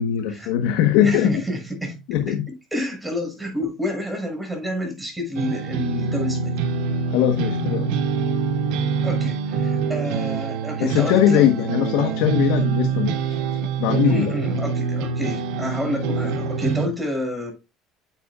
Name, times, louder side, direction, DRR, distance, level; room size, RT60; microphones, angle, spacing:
voice 1, 0.0-1.4 2.1-2.4 7.1-8.0 10.8-13.1 13.8-14.3, left 10 dB, 80° left, 1.2 m, -20 dB
voice 2, 1.0-2.0 2.3-2.4 2.7-6.5 9.0-11.5 14.0-17.5, left 1 dB, 5° right, 6.4 m, -29 dB
sound 1, 5.3-16.9, right 5 dB, 75° right, 2.2 m, -25 dB
10.5 x 8.6 x 2.4 m
supercardioid pair, 110°, 0 cm